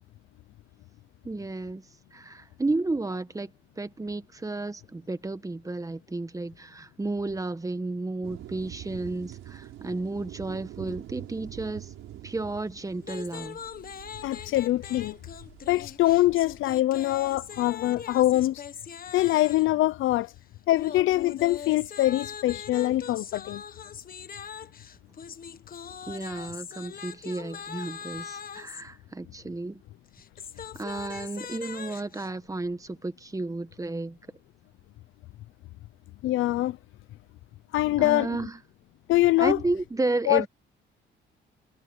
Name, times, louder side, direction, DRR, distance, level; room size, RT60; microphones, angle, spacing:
voice 1, 1.2-1.8 2.1-3.5 3.8-11.9 12.2-13.6 26.1-29.8 30.7-34.2 38.0-38.6 39.4-40.5, right 2 dB, 15° right, 1.5 m, -32 dB
sound 1, 8.2-16.6, right 14 dB, 90° right, 5.4 m, -45 dB
sound 2, 13.0-19.8 20.7-28.8 30.1-32.3, left 7 dB, 45° left, 1.4 m, -41 dB
voice 2, 14.2-15.2 15.7-18.6 19.1-20.3 20.7-23.6 36.2-36.8 37.7-38.3 39.1-39.6 40.3-40.4, left 16 dB, 85° left, 0.6 m, -23 dB
cardioid pair, 90°, 20 cm